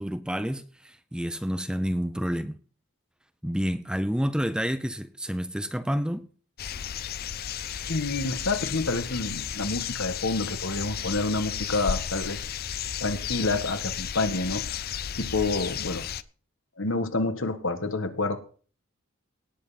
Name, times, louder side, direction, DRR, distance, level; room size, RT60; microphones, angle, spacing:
voice 1, 0.0-2.5 3.4-6.3, equal, 5° right, 0.6 m, -29 dB
sound 1, 6.6-16.2, left 8 dB, 45° left, 0.5 m, -33 dB
voice 2, 7.9-12.4 13.0-14.6 15.2-16.0 16.8-18.4, left 3 dB, 60° left, 1.6 m, -28 dB
18.0 x 8.0 x 4.2 m
head